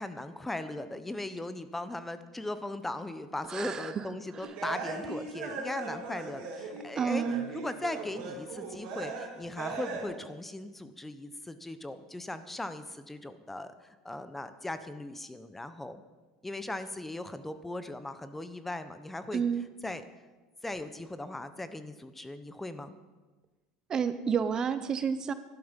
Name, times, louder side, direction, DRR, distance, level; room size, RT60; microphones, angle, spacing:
voice 1, 0.0-7.2 7.5-16.0 16.4-19.4 19.8-20.0 20.6-23.0, left 2 dB, 10° left, 12 dB, 0.8 m, -38 dB
voice 2, 3.5-4.0 4.3-4.5 7.0-7.4 19.3-19.7 23.9-25.3, right 7 dB, 30° right, 13 dB, 0.7 m, -30 dB
sound 1, 4.4-6.8 7.1-9.3 9.6-10.0, right 4 dB, 65° right, 3.4 m, -39 dB
12.0 x 11.5 x 5.2 m, 1.2 s
supercardioid pair, 110°, 2 cm